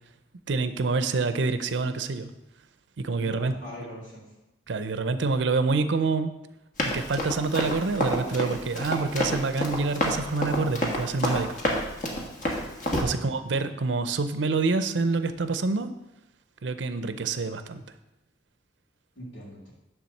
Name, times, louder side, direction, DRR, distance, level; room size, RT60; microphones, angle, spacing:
voice 1, 0.5-2.3 3.0-3.5 4.7-6.3 6.8-11.6 13.0-15.9 16.6-17.8, right 4 dB, 85° right, 11 dB, 0.6 m, -27 dB
voice 2, 3.2-4.3 13.1-13.4 19.2-19.7, equal, 90° left, -8 dB, 2.3 m, -41 dB
Run, 6.8-13.0, equal, 45° left, 1.5 m, -28 dB
9.9 x 3.6 x 6.5 m, 0.93 s
head